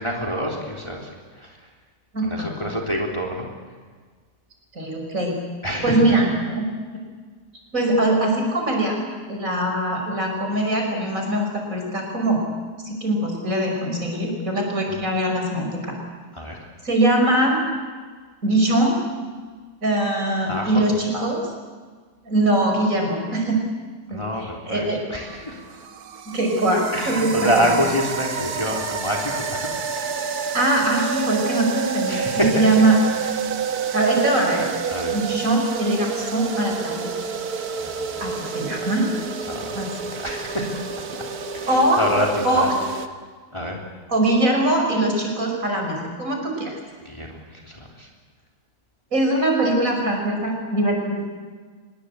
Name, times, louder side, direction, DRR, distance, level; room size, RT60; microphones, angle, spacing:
voice 1, 0.0-1.7 2.2-3.5 5.6-6.1 14.9-15.0 16.3-16.7 20.5-20.9 24.1-25.8 26.9-30.1 32.1-32.9 33.2-33.5 34.9-35.2 37.8-38.9 39.4-41.3 41.5-42.7 43.5-43.8 47.0-48.1, equal, 15° left, -1 dB, 3.5 m, -28 dB
voice 2, 2.1-2.5 4.7-5.4 5.8-6.7 7.7-9.0 9.3-12.4 12.8-15.9 16.8-17.6 18.4-19.0 19.8-21.4 22.2-23.6 24.1-24.2 24.7-25.0 26.3-27.7 30.5-33.0 33.9-34.7 35.1-37.1 38.2-39.1 39.7-39.9 41.7-42.0 42.4-42.7 44.1-46.8 49.1-51.2, right 1 dB, 55° right, 1 dB, 6.0 m, -22 dB
sound 1, 25.1-43.1, right 6 dB, 70° right, 1.7 m, -29 dB
25.0 x 21.5 x 8.3 m, 1.5 s
omnidirectional pair, 1.7 m